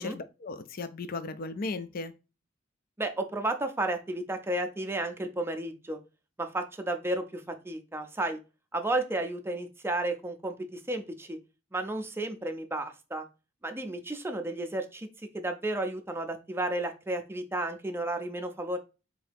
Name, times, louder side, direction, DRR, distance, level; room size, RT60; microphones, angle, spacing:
voice 1, 0.0-2.1, left 3 dB, 50° left, 0.4 m, -36 dB
voice 2, 3.0-6.0 6.4-8.4 8.7-11.4 11.7-13.3 13.6-15.1 15.3-18.8, right 2 dB, 10° right, 0.5 m, -32 dB
3.8 x 2.7 x 3.4 m
head